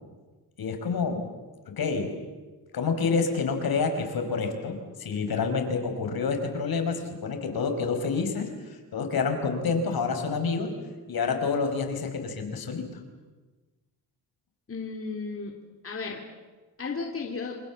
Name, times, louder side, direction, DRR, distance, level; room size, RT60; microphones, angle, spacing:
voice 1, 0.6-1.2 1.8-2.1 2.7-10.7 11.1-12.8, left 5 dB, 60° left, 5 dB, 5.4 m, -28 dB
voice 2, 14.7-15.6 15.8-16.2 16.8-17.6, left 4 dB, 35° left, 1 dB, 3.5 m, -34 dB
29.0 x 26.5 x 7.4 m, 1.3 s
cardioid pair, 110°, 41 cm